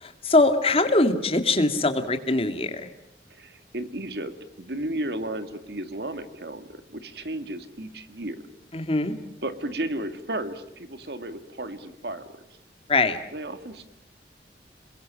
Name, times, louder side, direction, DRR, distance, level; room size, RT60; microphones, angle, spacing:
voice 1, 0.0-2.9 8.7-9.1 12.9-13.2, left 2 dB, 30° left, 8 dB, 2.0 m, -22 dB
voice 2, 3.3-4.3 4.6-8.4 9.4-12.4 13.3-13.9, right 1 dB, 65° right, 10 dB, 2.0 m, -34 dB
27.5 x 22.0 x 7.5 m, 0.81 s
head